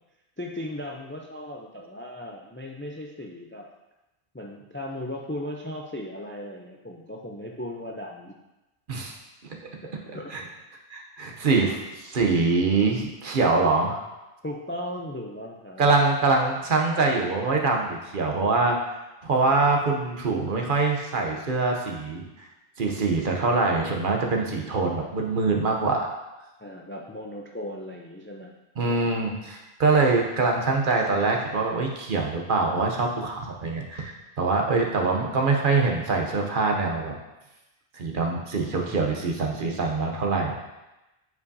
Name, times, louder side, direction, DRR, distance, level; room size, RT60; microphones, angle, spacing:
voice 1, 0.4-3.7 4.3-8.3 10.1-10.3 14.4-15.9 26.6-28.5 38.9-39.2, left 1 dB, 20° left, 0 dB, 0.3 m, -37 dB
voice 2, 10.9-14.0 15.8-18.8 19.2-22.2 22.8-26.1 28.8-37.1 37.9-40.5, right 3 dB, 55° right, 1 dB, 0.9 m, -24 dB
8.1 x 4.8 x 2.7 m, 1.0 s
omnidirectional pair, 1.0 m